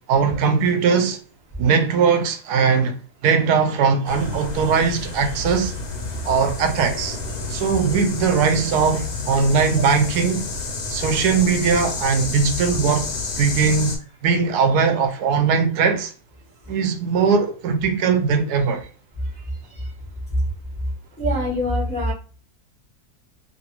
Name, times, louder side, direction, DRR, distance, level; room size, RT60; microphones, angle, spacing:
voice 1, 0.1-1.2 1.6-2.9 3.2-5.7 6.2-7.2 7.5-10.5 10.9-13.1 13.4-13.9 14.2-16.1 16.7-18.9, right 5 dB, 85° right, 1.1 m, -20 dB
sound 1, 4.1-14.0, left 3 dB, 75° left, 1.3 m, -30 dB
voice 2, 21.2-22.1, equal, 10° left, 0.5 m, -24 dB
3.0 x 2.6 x 2.8 m
omnidirectional pair, 1.7 m